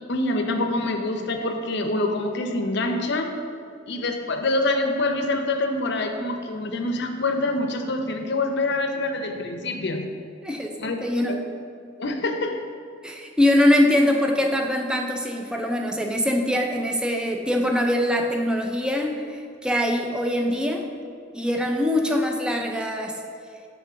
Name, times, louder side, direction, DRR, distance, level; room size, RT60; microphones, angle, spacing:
voice 1, 0.1-3.3 3.9-10.1 10.8-11.0 11.3-11.4 12.0-12.6, left 2 dB, 60° left, 5 dB, 0.6 m, -26 dB
voice 2, 10.4-11.5 13.0-20.8 21.3-23.2, left 1 dB, 5° right, 2 dB, 0.5 m, -23 dB
6.1 x 3.7 x 5.7 m, 2.4 s
head